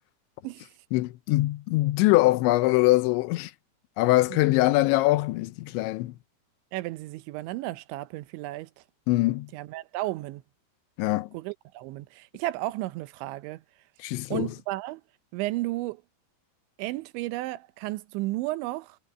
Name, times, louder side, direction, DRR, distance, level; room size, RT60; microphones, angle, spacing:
voice 1, 0.9-3.5 4.0-6.1 9.1-9.5 11.0-11.3 14.0-14.5, left 19 dB, 85° left, 3.1 m, -23 dB
voice 2, 6.7-8.7 9.5-10.4 11.3-13.6 14.3-15.0 15.3-16.0 16.8-19.0, right 18 dB, 90° right, 3.2 m, -33 dB
omnidirectional pair, 5.2 m